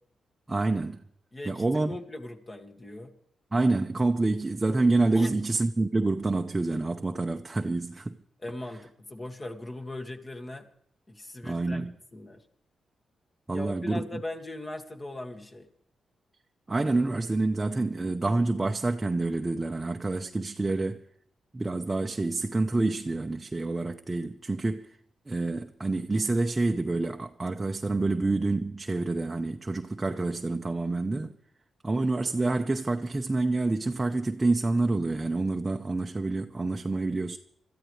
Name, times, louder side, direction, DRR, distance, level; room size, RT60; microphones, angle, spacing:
voice 1, 0.5-1.0 1.4-2.0 3.5-8.2 11.4-11.9 13.5-14.2 16.7-21.0 21.5-24.9 25.3-31.3 31.8-37.4, right 2 dB, 20° right, 0.8 m, -27 dB
voice 2, 1.3-3.1 5.1-5.3 8.4-10.7 11.1-12.4 13.5-15.7, left 2 dB, 25° left, 2.2 m, -39 dB
26.5 x 14.0 x 3.3 m
cardioid pair, 105°, 0 cm